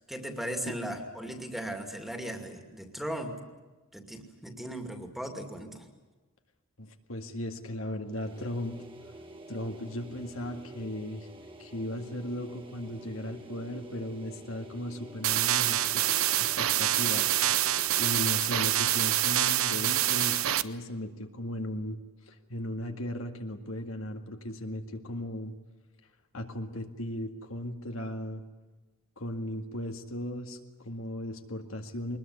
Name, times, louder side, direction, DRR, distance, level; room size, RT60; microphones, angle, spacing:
voice 1, 0.1-3.4 3.9-5.9, equal, ahead, 5 dB, 2.5 m, -37 dB
voice 2, 6.8-8.8 9.5-11.3 11.6-16.1 16.4-17.6 18.0-22.0 22.3-25.5 26.3-28.4 29.2-32.2, left 1 dB, 75° left, 4 dB, 2.1 m, -37 dB
sound 1, 8.0-18.5, equal, 25° right, 2.2 m, -48 dB
sound 2, 15.2-20.6, right 13 dB, 85° right, 0.8 m, -26 dB
22.5 x 20.5 x 9.7 m, 1.2 s
head